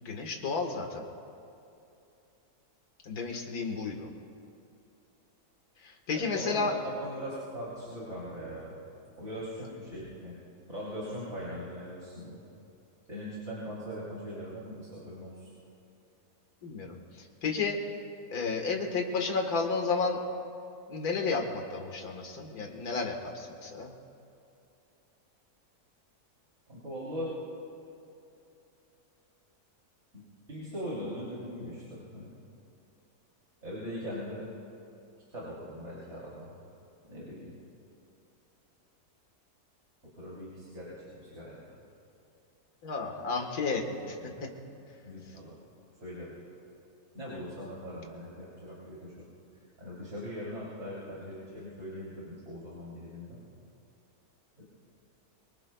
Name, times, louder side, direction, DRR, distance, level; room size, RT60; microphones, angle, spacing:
voice 1, 0.0-1.0 3.0-4.1 5.8-6.7 16.6-17.0 17.4-17.8 18.3-20.2 20.9-23.9 42.8-43.8, left 4 dB, 70° left, 2 dB, 2.0 m, -32 dB
voice 2, 6.1-8.8 9.2-10.4 10.7-12.4 13.1-15.5 26.7-27.3 30.5-32.3 33.6-34.4 35.3-36.6 37.1-37.6 40.2-41.6 43.9-44.5 45.0-45.6 46.0-46.4 47.1-49.2 49.8-53.4 54.6-54.7, equal, 45° right, -9 dB, 3.6 m, -40 dB
25.0 x 23.5 x 2.3 m, 2.7 s
omnidirectional pair, 1.7 m